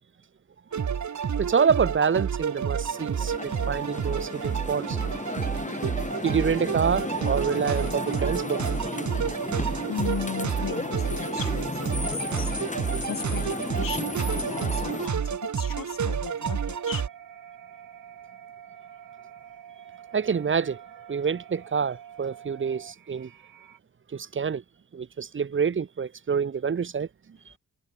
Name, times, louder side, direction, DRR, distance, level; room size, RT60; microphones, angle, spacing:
sound 1, 0.7-17.1, right 7 dB, 55° right, 2.8 m, -29 dB
voice 1, 1.4-5.0 6.2-8.6 20.1-20.8 21.1-23.3 24.1-24.6 24.9-27.1 27.5-27.6, right 6 dB, 35° right, 1.0 m, -27 dB
sound 2, 2.6-15.1, left 3 dB, 20° left, 6.7 m, -34 dB
voice 2, 9.9-12.5 12.9-17.0, left 8 dB, 70° left, 3.4 m, -37 dB
sound 3, 16.3-23.8, right 9 dB, 80° right, 3.2 m, -47 dB
wide cardioid pair, 115°, 34 cm